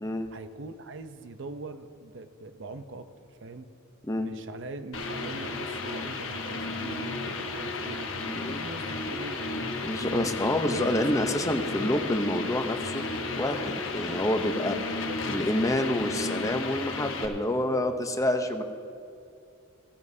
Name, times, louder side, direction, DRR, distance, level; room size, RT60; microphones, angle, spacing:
voice 1, 0.3-3.7 4.1-9.4 9.8-11.5 14.9-15.2, right 2 dB, 65° right, 9 dB, 0.7 m, -42 dB
sound 1, 4.9-17.2, left 3 dB, 75° left, 1.1 m, -33 dB
voice 2, 9.8-13.0 13.4-15.0 15.3-18.6, left 1 dB, 15° left, 6 dB, 0.7 m, -28 dB
16.5 x 15.5 x 2.7 m, 2.6 s
head